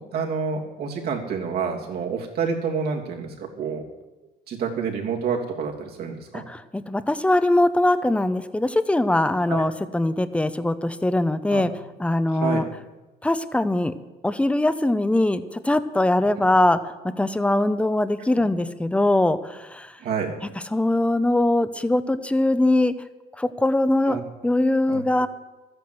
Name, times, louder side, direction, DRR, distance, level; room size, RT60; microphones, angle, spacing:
voice 1, 0.0-3.8 4.5-6.4 9.5-9.6 11.5-11.6 12.4-12.6 20.0-20.3 24.1-24.2 24.9-25.0, right 6 dB, 65° right, 0 dB, 2.9 m, -28 dB
voice 2, 6.3-11.7 12.0-12.6 13.2-13.9 14.2-20.0 20.7-22.9 23.4-25.3, left 1 dB, 5° left, 12 dB, 0.8 m, -22 dB
13.0 x 9.8 x 7.8 m, 1.1 s
cardioid pair, 110°, 17 cm